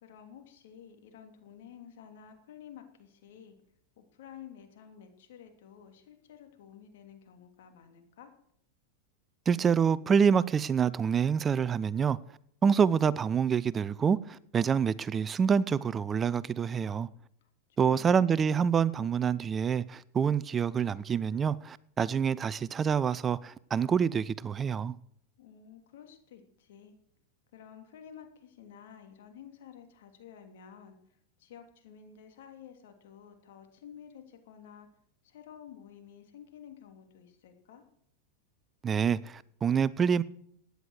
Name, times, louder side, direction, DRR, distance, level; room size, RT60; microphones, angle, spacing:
voice 1, 0.0-3.5 4.0-8.3 17.4-18.2 25.4-26.9 27.5-31.0 31.4-34.9 35.2-37.8, left 8 dB, 70° left, 2.9 m, -51 dB
voice 2, 9.5-12.2 12.6-17.1 17.8-24.9 38.8-40.2, right 7 dB, 25° right, 0.5 m, -27 dB
16.0 x 9.7 x 6.5 m
hypercardioid pair, 115°, 0 cm